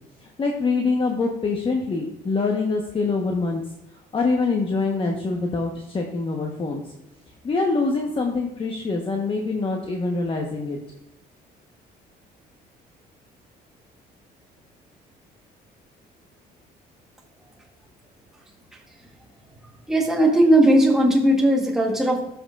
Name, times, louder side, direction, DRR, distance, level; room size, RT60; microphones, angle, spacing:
voice 1, 0.4-3.6 4.1-6.8 7.4-10.8, left 3 dB, 30° left, 1 dB, 1.1 m, -24 dB
voice 2, 19.9-22.3, right 1 dB, 5° right, -1 dB, 1.3 m, -18 dB
12.5 x 6.4 x 2.4 m, 0.87 s
cardioid pair, 110°, 17 cm